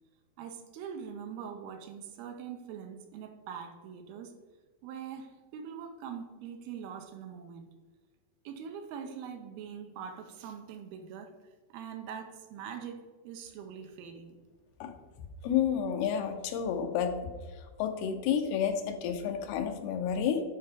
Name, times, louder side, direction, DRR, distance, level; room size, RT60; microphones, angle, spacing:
voice 1, 0.4-4.3 4.8-7.7 8.4-11.3 11.7-14.4, right 7 dB, 85° right, 5 dB, 2.5 m, -43 dB
voice 2, 15.4-17.1 17.8-20.4, left 8 dB, 90° left, 6 dB, 2.8 m, -30 dB
9.9 x 4.4 x 3.6 m, 1.3 s
omnidirectional pair, 4.5 m